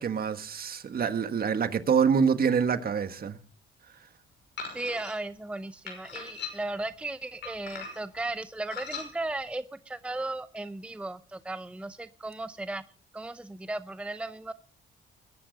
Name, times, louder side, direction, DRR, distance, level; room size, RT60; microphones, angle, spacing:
voice 1, 0.0-3.4, right 6 dB, 50° right, 1.5 m, -26 dB
sound 1, 4.6-5.1 5.9-6.8 7.4-8.1 8.7-9.1, left 5 dB, 65° left, 5.9 m, -39 dB
voice 2, 4.7-12.8 13.1-14.5, right 2 dB, 5° right, 0.6 m, -36 dB
21.0 x 10.0 x 4.0 m
cardioid pair, 90°, 20 cm